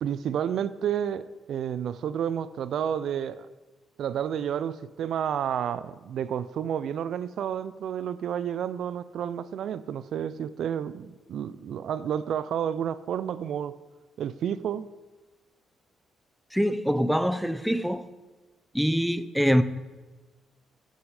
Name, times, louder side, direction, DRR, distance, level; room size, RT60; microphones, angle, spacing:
voice 1, 0.0-3.5 4.0-13.7 14.2-14.9, right 9 dB, 70° right, 15 dB, 0.4 m, -30 dB
voice 2, 16.5-18.1 18.7-19.6, equal, ahead, 13 dB, 0.5 m, -24 dB
12.5 x 6.5 x 4.8 m, 1.2 s
cardioid pair, 90°, 0 cm